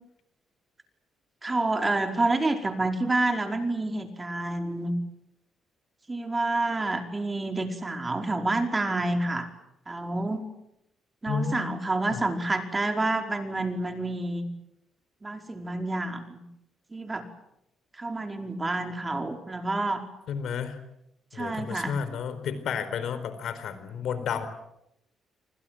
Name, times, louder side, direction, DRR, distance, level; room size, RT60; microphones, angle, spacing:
voice 1, 1.4-4.9 6.1-9.5 9.9-10.4 11.2-14.4 15.2-16.4 16.9-17.2 18.0-20.0 21.3-21.9, right 2 dB, 20° right, 5 dB, 4.9 m, -28 dB
voice 2, 11.3-11.8 12.1-12.2 20.3-20.8 21.3-24.5, left 6 dB, 70° left, 12 dB, 4.4 m, -32 dB
28.5 x 25.0 x 7.8 m, 0.84 s
cardioid pair, 90°, 0 cm